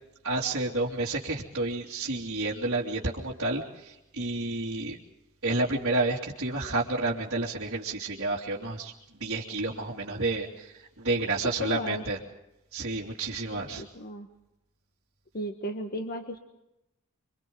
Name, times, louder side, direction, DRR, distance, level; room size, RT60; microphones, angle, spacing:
voice 1, 0.2-5.0 5.4-12.2 12.7-13.8, right 2 dB, 60° right, -7 dB, 2.9 m, -30 dB
voice 2, 11.1-12.0 13.5-14.3 15.3-16.4, equal, 45° left, 5 dB, 1.4 m, -36 dB
29.0 x 25.0 x 3.9 m, 0.89 s
head